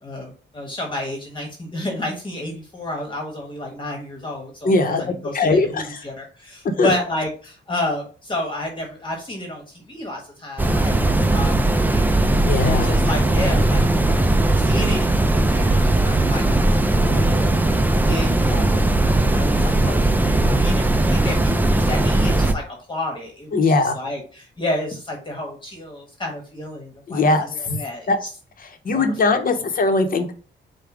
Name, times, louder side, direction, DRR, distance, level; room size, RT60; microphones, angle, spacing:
voice 1, 0.0-4.9 5.2-12.2 12.6-14.2 14.5-28.3 28.9-29.3, left 1 dB, 25° left, 1 dB, 1.2 m, -31 dB
voice 2, 4.6-5.0 5.3-5.9 6.8-6.9 12.4-12.9 23.5-24.0 27.1-27.8 28.1-28.2 28.6-30.3, left 3 dB, 50° left, 6 dB, 0.8 m, -20 dB
sound 1, 10.6-22.5, right 2 dB, 10° right, 0.4 m, -18 dB
4.9 x 2.2 x 4.8 m, 0.38 s
cardioid pair, 105°, 19 cm